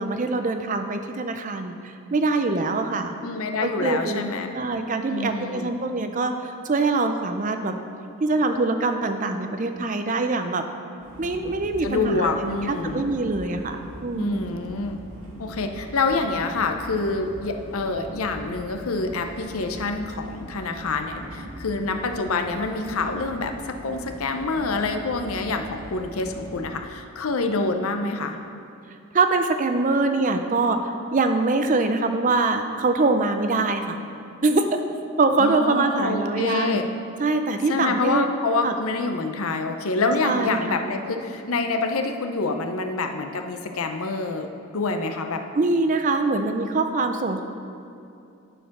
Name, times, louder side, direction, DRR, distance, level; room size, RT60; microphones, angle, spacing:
voice 1, 0.0-3.1 3.6-7.7 8.2-10.6 11.2-14.5 29.1-34.0 34.4-34.8 35.2-36.8 37.2-38.3 38.6-38.7 40.2-40.9 45.5-47.4, right 3 dB, 35° right, 7 dB, 0.4 m, -24 dB
voice 2, 3.2-4.5 5.1-5.7 11.8-13.0 14.1-15.0 15.4-28.4 35.4-36.9 37.7-44.5 44.7-45.4, left 3 dB, 70° left, 6 dB, 0.6 m, -26 dB
sound 1, 11.0-26.6, equal, 85° right, 2.0 m, -41 dB
10.0 x 4.5 x 5.9 m, 2.6 s
head